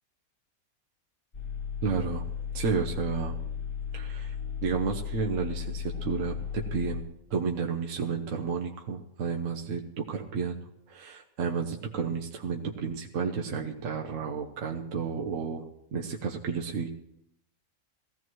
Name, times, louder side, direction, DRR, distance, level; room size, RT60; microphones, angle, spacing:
sound 1, 1.3-7.0, left 7 dB, 60° left, 2.9 m, -35 dB
voice 1, 1.8-2.3 2.5-3.4 3.9-4.4 4.6-7.0 7.3-10.6 10.9-16.9, right 5 dB, 60° right, 1 dB, 1.3 m, -32 dB
19.0 x 15.0 x 3.1 m, 0.80 s
omnidirectional pair, 1.5 m